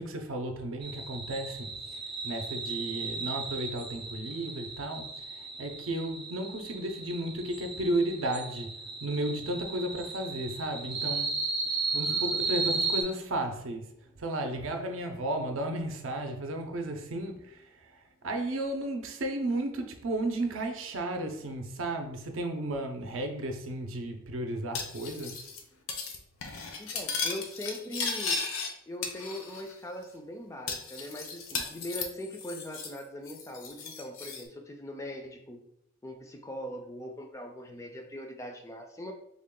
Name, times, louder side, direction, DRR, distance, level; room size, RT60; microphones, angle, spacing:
voice 1, 0.0-8.7 9.0-11.3 11.9-13.9 14.2-17.9 18.2-25.5, right 1 dB, 70° right, 5 dB, 0.6 m, -34 dB
sound 1, 0.8-13.0, right 4 dB, 25° right, 0.6 m, -35 dB
Cutlery silverware, 24.7-25.6 25.9-26.2 26.4-28.7 29.0-29.7 30.0-30.1 30.7-33.0 33.3-34.4, left 5 dB, 80° left, 0.6 m, -35 dB
voice 2, 26.8-28.4 28.9-35.7 36.0-39.1, equal, 15° left, 4 dB, 0.3 m, -41 dB
3.6 x 2.2 x 3.6 m, 0.77 s
head